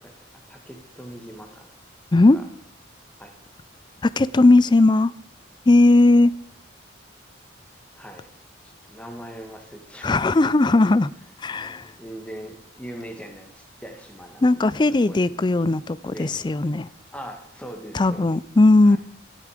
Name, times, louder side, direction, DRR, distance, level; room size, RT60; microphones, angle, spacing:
voice 1, 0.0-1.8 2.3-2.5 3.2-3.3 4.3-4.6 7.9-8.3 8.6-10.8 12.0-15.4 16.1-16.4 16.6-16.9 17.1-18.4 18.8-19.0, equal, 5° left, 1.8 m, -41 dB
voice 2, 4.0-5.1 5.7-6.3 10.0-11.1 11.4-11.9 14.4-16.9 17.9-19.0, left 2 dB, 25° left, 0.4 m, -17 dB
13.5 x 12.5 x 5.0 m
head